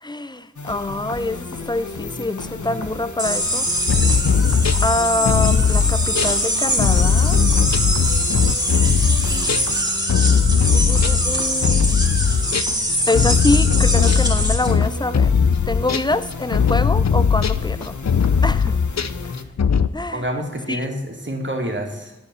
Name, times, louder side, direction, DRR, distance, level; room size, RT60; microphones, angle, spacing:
voice 1, 0.0-3.7 4.8-7.4 9.3-9.6 10.7-11.9 13.1-15.3 15.7-18.0 18.4-18.7 19.9-20.2 20.7-20.8, left 2 dB, 15° left, 13 dB, 0.6 m, -25 dB
sound 1, 0.6-19.5, left 3 dB, 80° left, 1.0 m, -34 dB
sound 2, 3.2-14.7, right 1 dB, 15° right, 2.1 m, -23 dB
sound 3, 3.9-12.8 13.1-19.9, left 6 dB, 65° left, 0.5 m, -18 dB
voice 2, 20.1-22.1, equal, 40° right, 2 dB, 2.3 m, -28 dB
10.5 x 7.0 x 6.9 m, 0.98 s
wide cardioid pair, 50°, 29 cm